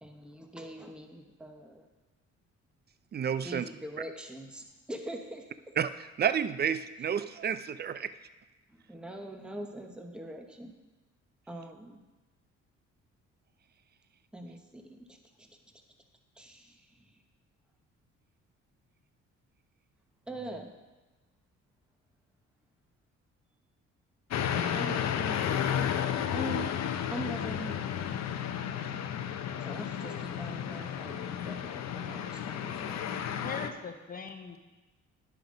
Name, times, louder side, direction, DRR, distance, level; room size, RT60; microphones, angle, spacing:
voice 1, 0.0-1.8 3.4-5.7 8.7-10.7 11.5-12.0 14.3-15.6 16.4-17.2 20.3-20.7 24.6-25.7 26.3-27.9 29.3-33.2, right 1 dB, 5° right, 3 dB, 1.0 m, -43 dB
voice 2, 3.1-3.6 5.8-5.9 6.2-8.1, right 8 dB, 35° right, 13 dB, 0.5 m, -30 dB
sound 1, 24.3-33.7, left 9 dB, 60° left, 0.7 m, -32 dB
voice 3, 33.4-34.6, left 5 dB, 30° left, 6 dB, 1.0 m, -40 dB
10.5 x 5.9 x 5.2 m, 1.1 s
cardioid pair, 90°, 30 cm